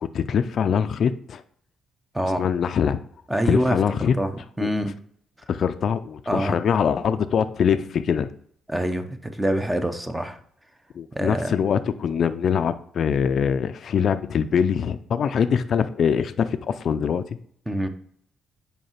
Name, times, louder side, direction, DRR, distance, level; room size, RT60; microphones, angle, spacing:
voice 1, 0.0-1.4 2.4-3.0 3.4-4.2 4.6-4.7 5.5-8.3 11.0-17.2, left 7 dB, 60° left, 11 dB, 0.4 m, -23 dB
voice 2, 2.1-2.5 3.3-3.8 4.2-4.9 6.3-6.6 8.7-10.4 11.1-11.5 17.7-17.9, right 1 dB, 10° right, 8 dB, 0.8 m, -25 dB
5.4 x 4.8 x 5.7 m, 0.65 s
cardioid pair, 90°, 0 cm